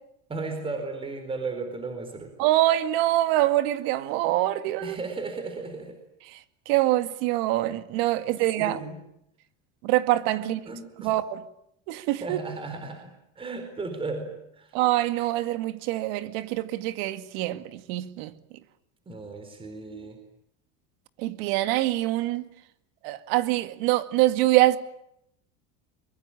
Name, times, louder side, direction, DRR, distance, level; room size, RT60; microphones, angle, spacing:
voice 1, 0.3-2.3 4.8-5.9 8.2-8.3 8.6-9.0 10.4-11.1 12.2-14.7 19.1-20.2, right 3 dB, 15° right, 4.3 m, -35 dB
voice 2, 2.4-5.0 6.3-6.4 6.7-8.8 9.8-10.6 11.0-11.4 11.9-12.4 14.7-18.3 21.2-22.5 23.0-24.8, right 15 dB, 65° right, 2.2 m, -24 dB
24.0 x 22.5 x 9.9 m
cardioid pair, 150°, 32 cm